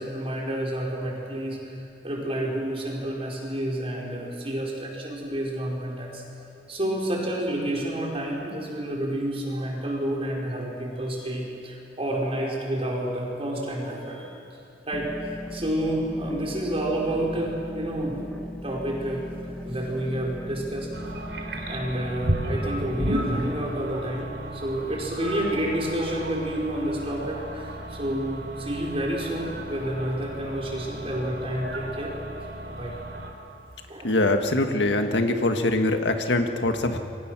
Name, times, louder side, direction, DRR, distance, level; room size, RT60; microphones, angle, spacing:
voice 1, 0.0-1.6 2.0-6.2 6.7-14.3 14.9-18.1 18.6-19.2 19.6-20.9 21.7-32.1 32.7-32.9 33.9-34.2, right 1 dB, 35° right, -2 dB, 4.7 m, -29 dB
sound 1, 14.9-23.7, equal, 5° left, 0.7 m, -38 dB
sound 2, 20.9-33.3, right 1 dB, 90° right, 3.5 m, -34 dB
voice 2, 34.0-37.0, left 2 dB, 80° left, 5 dB, 1.8 m, -23 dB
27.5 x 24.0 x 6.2 m, 2.6 s
head